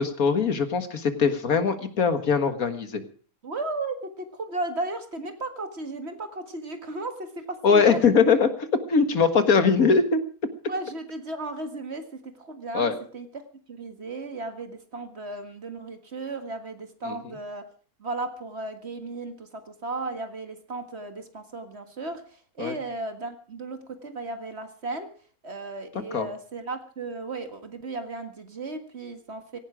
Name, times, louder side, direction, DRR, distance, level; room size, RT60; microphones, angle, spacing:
voice 1, 0.0-3.0 7.6-10.2 12.7-12.9 17.0-17.2 22.6-22.8 26.1-26.3, left 5 dB, 70° left, 9 dB, 2.1 m, -21 dB
voice 2, 3.4-8.0 10.7-17.7 18.0-25.1 25.4-29.6, right 2 dB, 45° right, 7 dB, 2.0 m, -35 dB
17.0 x 16.0 x 5.0 m, 0.42 s
omnidirectional pair, 1.6 m